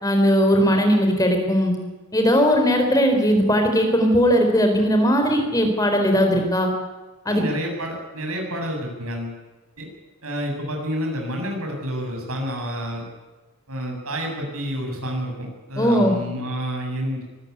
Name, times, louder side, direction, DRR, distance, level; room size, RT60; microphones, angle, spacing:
voice 1, 0.0-1.7 2.1-6.7 7.3-7.4 15.8-16.2, equal, 15° left, 4 dB, 4.3 m, -18 dB
voice 2, 7.2-9.4 9.8-9.9 10.2-13.1 13.7-17.2, equal, 80° right, 1 dB, 7.7 m, -29 dB
24.5 x 14.5 x 9.7 m, 1.2 s
head